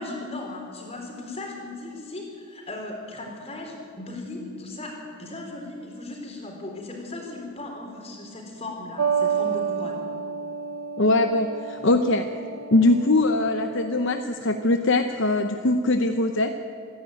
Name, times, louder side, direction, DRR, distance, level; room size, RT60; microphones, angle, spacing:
voice 1, 0.0-10.0, left 2 dB, 30° left, 1 dB, 4.2 m, -37 dB
sound 1, 9.0-14.2, right 7 dB, 75° right, 0.7 m, -30 dB
voice 2, 11.0-12.3 12.7-16.5, left 2 dB, 55° left, 7 dB, 0.8 m, -21 dB
26.5 x 11.0 x 9.3 m, 2.7 s
head